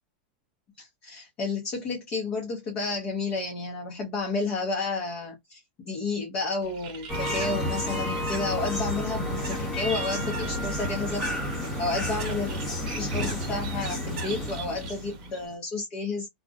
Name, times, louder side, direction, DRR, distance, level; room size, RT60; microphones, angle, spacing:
voice 1, 0.8-11.2 11.8-16.3, left 3 dB, 25° left, 0.6 m, -31 dB
Bird, 6.6-15.5, right 5 dB, 40° right, 0.8 m, -43 dB
sound 1, 7.1-15.4, left 1 dB, 10° left, 1.0 m, -31 dB
2.6 x 2.0 x 2.4 m
supercardioid pair, 175°, 5 cm